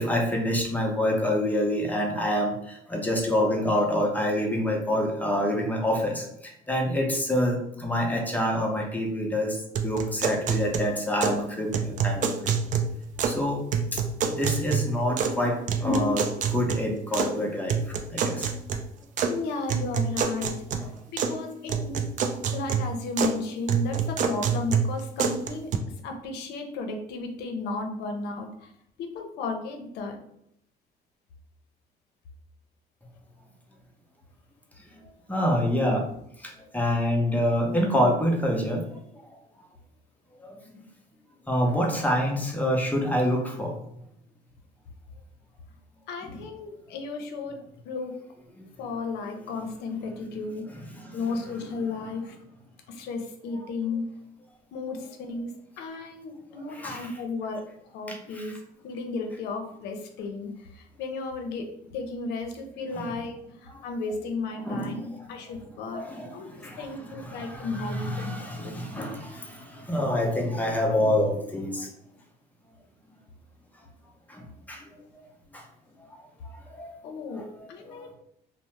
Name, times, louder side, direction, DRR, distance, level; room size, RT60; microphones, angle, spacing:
voice 1, 0.0-9.6 9.8-12.5 13.2-13.6 13.9-14.0 14.3-17.8 18.1-18.5 20.8-20.9 35.3-36.1 36.4-38.8 40.4-40.6 41.5-43.7 46.3-46.4 48.6-48.7 51.0-51.2 51.5-51.6 56.7-57.1 58.1-58.6 62.9-63.1 64.6-65.2 65.9-71.9 74.3-74.8 75.5-75.6 76.0-76.1 76.7-76.9, left 1 dB, 10° left, 0 dB, 0.6 m, -27 dB
sound 1, 9.8-11.4 11.7-13.4 13.7-15.4 15.7-17.3 17.7-19.3 19.7-21.4 21.7-23.4 23.7-25.8, right 6 dB, 50° right, 0.4 m, -28 dB
voice 2, 19.3-20.5 21.1-22.1 22.5-28.7 29.0-30.2 46.1-48.2 48.8-50.6 51.1-52.4 52.9-54.0 54.7-58.6 58.8-63.3 63.6-64.9 65.3-66.0 66.3-68.3 68.6-68.8 71.4-71.5 77.0-78.1, left 3 dB, 80° left, 5 dB, 0.6 m, -34 dB
2.6 x 2.0 x 3.1 m, 0.73 s
cardioid pair, 110°, 17 cm